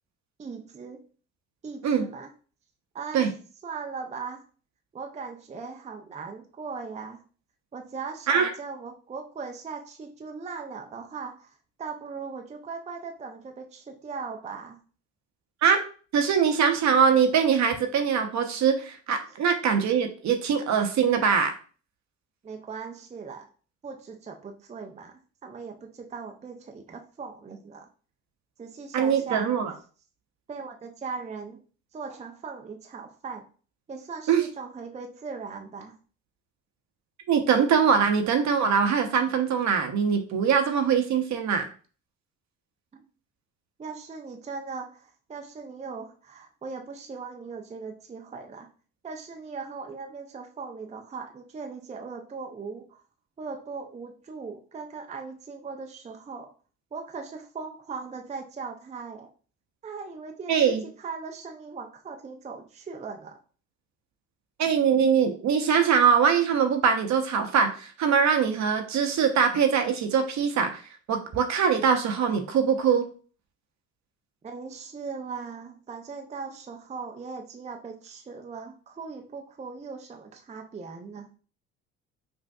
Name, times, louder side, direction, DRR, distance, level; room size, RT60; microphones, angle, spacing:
voice 1, 0.4-1.0 1.6-2.3 2.9-3.3 3.6-4.4 4.9-7.2 7.7-14.8 22.4-23.5 23.8-27.9 28.6-29.5 30.5-31.6 31.9-33.4 33.9-36.0 42.9-43.0 43.8-48.7 49.0-53.0 53.4-56.5 56.9-59.3 59.8-63.4 74.4-81.3, right 5 dB, 20° right, 3 dB, 0.5 m, -39 dB
voice 2, 16.1-21.5 28.9-29.7 34.3-34.4 37.3-41.7 60.5-60.8 64.6-70.8 71.1-73.0, right 6 dB, 50° right, 5 dB, 0.8 m, -22 dB
5.2 x 2.5 x 2.3 m, 0.39 s
hypercardioid pair, 60°, 36 cm